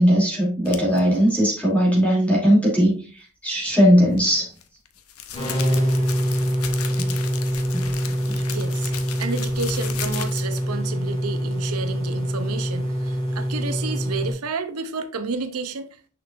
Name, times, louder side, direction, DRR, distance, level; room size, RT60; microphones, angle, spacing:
voice 1, 0.0-4.5 6.9-7.1 7.7-7.9 8.3-8.4, equal, 5° left, 2.8 m, -19 dB
sound 1, 0.7-1.0 4.1-10.7, left 8 dB, 75° left, 0.8 m, -36 dB
sound 2, 5.3-14.3, equal, 30° left, 2.1 m, -25 dB
voice 2, 8.3-8.9 9.2-16.0, right 4 dB, 85° right, 0.7 m, -31 dB
6.5 x 6.0 x 2.5 m
head